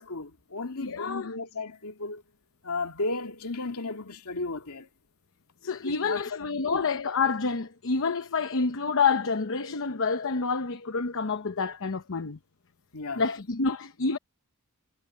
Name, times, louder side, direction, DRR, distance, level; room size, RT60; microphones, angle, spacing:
voice 1, 0.0-2.2 2.6-4.9 5.8-6.8 12.9-13.2, left 3 dB, 80° left, 2.4 m, -34 dB
voice 2, 0.8-1.3 5.6-12.4 13.2-14.2, left 4 dB, 65° left, 0.9 m, -28 dB
head